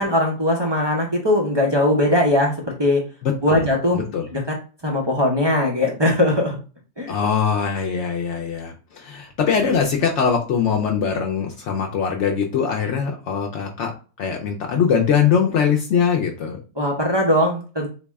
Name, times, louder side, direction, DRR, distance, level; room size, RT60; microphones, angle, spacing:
voice 1, 0.0-3.0 3.4-4.0 4.3-4.4 4.8-6.6 7.0-7.1 16.8-17.9, left 1 dB, 40° right, -1 dB, 0.3 m, -20 dB
voice 2, 3.2-3.6 3.9-4.3 7.1-13.9 14.2-16.6, left 6 dB, 65° left, 1 dB, 0.8 m, -22 dB
4.0 x 2.1 x 3.4 m, 0.35 s
omnidirectional pair, 1.5 m